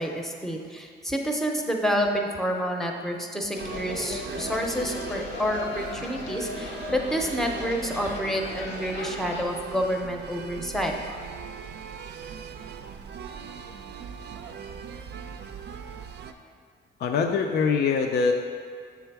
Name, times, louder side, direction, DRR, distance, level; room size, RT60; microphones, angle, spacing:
voice 1, 0.0-10.9, equal, ahead, 2 dB, 0.7 m, -29 dB
sound 1, 3.5-9.4, left 3 dB, 80° left, 1.0 m, -37 dB
sound 2, 3.6-16.3, right 7 dB, 60° right, 0.5 m, -40 dB
voice 2, 17.0-18.3, left 5 dB, 55° left, 3 dB, 0.4 m, -23 dB
7.4 x 3.5 x 4.7 m, 2.1 s
cardioid pair, 90°, 20 cm